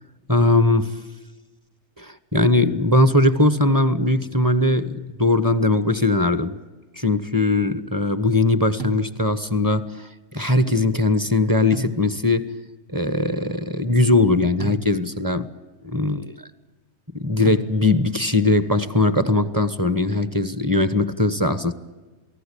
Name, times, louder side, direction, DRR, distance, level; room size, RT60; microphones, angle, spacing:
voice 1, 0.3-1.0 2.0-6.6 7.0-12.6 12.9-15.5 15.8-16.5 17.1-21.7, left 2 dB, 15° right, 1.0 m, -20 dB
sound 1, 8.8-9.6 11.7-12.5 14.6-15.4 17.4-18.2, right 2 dB, 70° right, 2.3 m, -35 dB
28.0 x 19.0 x 8.5 m
omnidirectional pair, 1.4 m